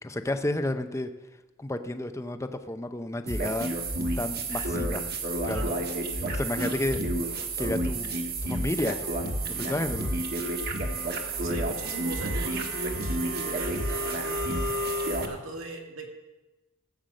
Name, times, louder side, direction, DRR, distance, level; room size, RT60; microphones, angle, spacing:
voice 1, 0.0-1.1 1.6-3.7 4.2-5.0 5.4-5.7 6.3-7.0 7.6-9.1 9.6-10.1, left 1 dB, 15° left, 9 dB, 0.6 m, -31 dB
sound 1, 3.3-15.2, right 1 dB, 50° right, 1.5 m, -30 dB
voice 2, 5.5-5.9 6.6-6.8 9.5-10.0 11.1-16.1, right 2 dB, 85° right, 2 dB, 2.1 m, -40 dB
14.0 x 8.0 x 6.4 m, 1.1 s
head